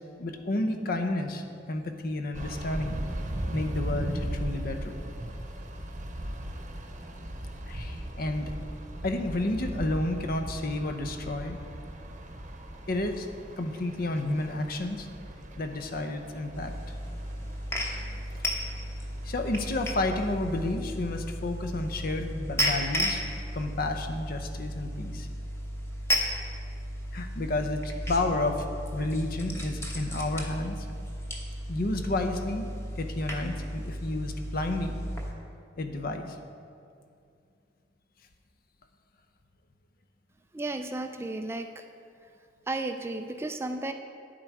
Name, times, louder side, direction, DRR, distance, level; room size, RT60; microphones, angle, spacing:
voice 1, 0.2-3.0 3.5-5.0 7.7-8.5 9.0-11.6 12.9-13.3 13.6-15.1 15.6-16.7 19.2-23.2 23.5-25.3 27.1-28.7 28.9-30.9 31.7-32.7 33.0-34.9 35.8-36.4 43.1-43.2, left 2 dB, 50° left, 6 dB, 0.7 m, -31 dB
sound 1, 2.3-19.8, right 1 dB, 40° right, 0.9 m, -38 dB
sound 2, 16.5-35.3, equal, 15° left, 1.0 m, -34 dB
voice 2, 40.5-41.8 42.7-43.9, right 2 dB, 15° right, 6 dB, 0.3 m, -33 dB
10.0 x 7.6 x 4.7 m, 2.4 s
head